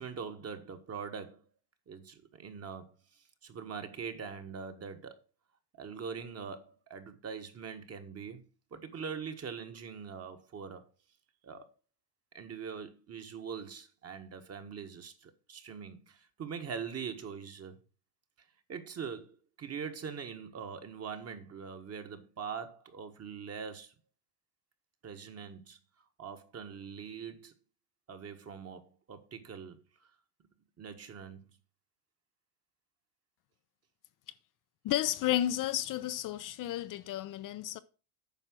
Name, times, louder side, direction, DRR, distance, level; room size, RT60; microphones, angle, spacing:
voice 1, 0.0-1.4 1.9-5.2 5.8-8.4 8.7-10.8 11.4-11.7 12.3-17.8 18.7-23.9 25.0-25.8 26.2-27.5 28.1-29.8 30.8-31.4, right 6 dB, 30° right, 1.6 m, -43 dB
voice 2, 34.8-37.8, left 13 dB, 45° left, 0.6 m, -32 dB
9.0 x 5.6 x 6.2 m
supercardioid pair, 105°, 47 cm